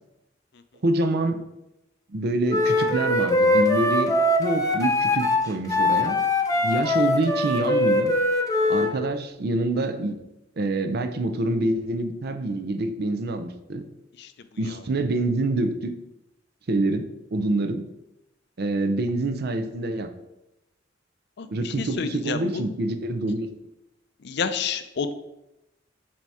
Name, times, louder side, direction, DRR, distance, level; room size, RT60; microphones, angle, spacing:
voice 1, 0.8-1.4 2.1-6.2 6.6-8.1 8.7-10.3 10.6-13.8 14.6-15.9 16.7-17.8 18.6-20.1 21.5-23.5, right 2 dB, 55° right, 8 dB, 0.6 m, -26 dB
Wind instrument woodwind instrument, 2.5-8.9, left 2 dB, 20° left, 0.7 m, -22 dB
voice 2, 21.4-22.7 24.2-25.1, left 6 dB, 60° left, 10 dB, 0.5 m, -30 dB
7.4 x 2.8 x 4.7 m, 0.90 s
head